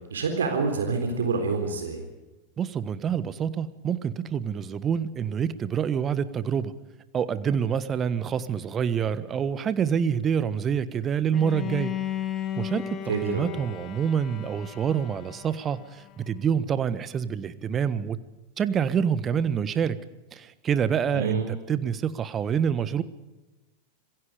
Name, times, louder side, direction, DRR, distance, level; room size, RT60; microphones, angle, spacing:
voice 1, 0.1-2.0 13.1-13.4 21.1-21.5, right 4 dB, 65° right, 5 dB, 3.8 m, -27 dB
voice 2, 2.6-6.7 7.1-11.9 12.6-18.2 18.6-20.0 20.3-23.0, right 7 dB, 25° right, 14 dB, 1.4 m, -27 dB
Bowed string instrument, 11.3-16.3, left 11 dB, 25° left, 1.8 m, -35 dB
26.5 x 22.0 x 5.1 m, 1.1 s
figure-of-eight pair, 90°, 0 cm